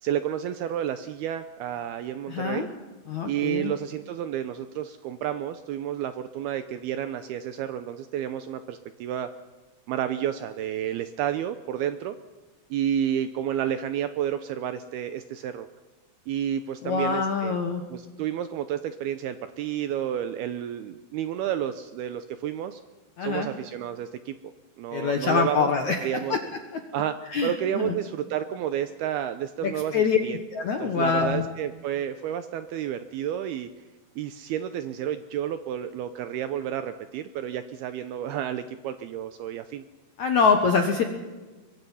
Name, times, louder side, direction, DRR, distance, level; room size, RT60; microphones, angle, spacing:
voice 1, 0.0-2.7 3.2-9.3 9.9-12.2 12.7-15.7 16.3-17.6 17.9-22.8 23.2-24.4 24.8-25.7 26.0-26.4 26.9-27.2 27.4-30.4 30.8-33.7 34.2-39.8, right 10 dB, 75° right, 11 dB, 2.4 m, -30 dB
voice 2, 2.3-2.7 3.1-3.7 16.8-17.8 23.2-23.5 24.9-26.4 26.7-26.8 27.3-28.0 29.6-30.2 30.5-31.4 40.2-41.0, left 5 dB, 65° left, 5 dB, 1.8 m, -25 dB
23.5 x 22.5 x 5.7 m, 1.3 s
omnidirectional pair, 5.3 m